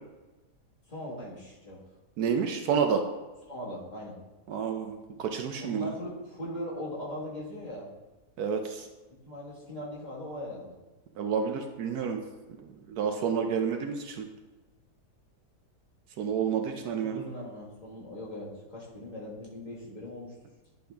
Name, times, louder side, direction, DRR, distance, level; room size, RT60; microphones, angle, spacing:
voice 1, 0.9-1.8 3.5-4.2 5.6-7.9 9.2-10.7 16.5-20.3, equal, 25° left, -7 dB, 1.6 m, -40 dB
voice 2, 2.2-3.0 4.5-5.9 8.4-8.9 11.2-12.2 12.6-14.3 16.2-17.2, right 6 dB, 70° right, 5 dB, 1.0 m, -29 dB
10.5 x 3.9 x 3.4 m, 1.2 s
omnidirectional pair, 1.8 m